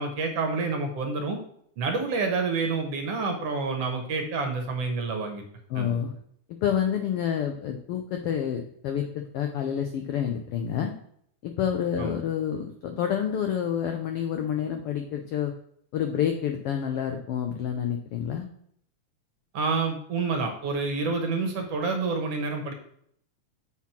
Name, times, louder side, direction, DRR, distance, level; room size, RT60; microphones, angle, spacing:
voice 1, 0.0-1.4 1.8-5.4 5.8-6.0 12.0-12.2 19.5-22.7, right 4 dB, 65° right, 4 dB, 1.9 m, -28 dB
voice 2, 5.7-6.1 6.6-10.9 11.4-15.5 15.9-18.5, left 9 dB, 80° left, 4 dB, 1.3 m, -28 dB
7.2 x 4.7 x 5.8 m, 0.67 s
omnidirectional pair, 3.4 m